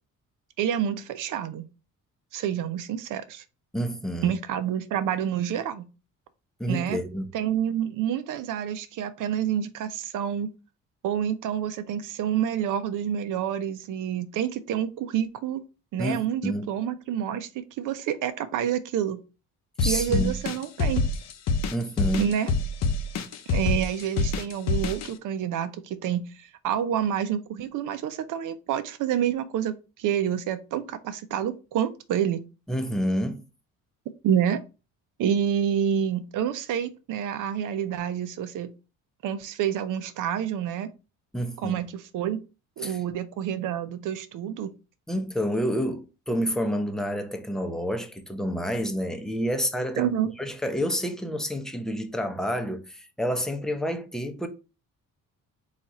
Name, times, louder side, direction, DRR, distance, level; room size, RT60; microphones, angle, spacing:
voice 1, 0.6-1.6 2.3-3.4 4.2-5.9 6.7-7.0 7.3-10.5 11.0-15.6 15.9-19.2 19.8-21.0 22.2-22.5 23.5-32.4 34.2-34.6 35.2-38.7 39.2-40.9 41.6-42.4 42.8-44.7 50.0-50.3, right 9 dB, 75° right, 0.6 m, -28 dB
voice 2, 3.7-4.3 6.6-7.3 16.0-16.7 19.8-20.4 21.7-22.3 32.7-33.5 41.3-41.8 42.8-43.0 45.1-50.1 50.4-54.5, equal, ahead, 0.6 m, -29 dB
sound 1, 19.8-25.1, left 3 dB, 55° left, 0.7 m, -26 dB
4.2 x 2.4 x 4.1 m
cardioid pair, 100°, 32 cm